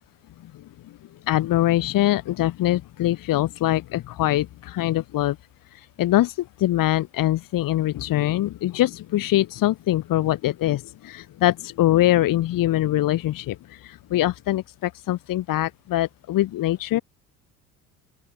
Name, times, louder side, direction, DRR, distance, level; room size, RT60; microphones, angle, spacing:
voice 1, 1.3-5.4 6.0-6.3 6.6-13.6 14.1-17.0, left 14 dB, 50° left, 2.2 m, -23 dB
open air
figure-of-eight pair, 55°, 43 cm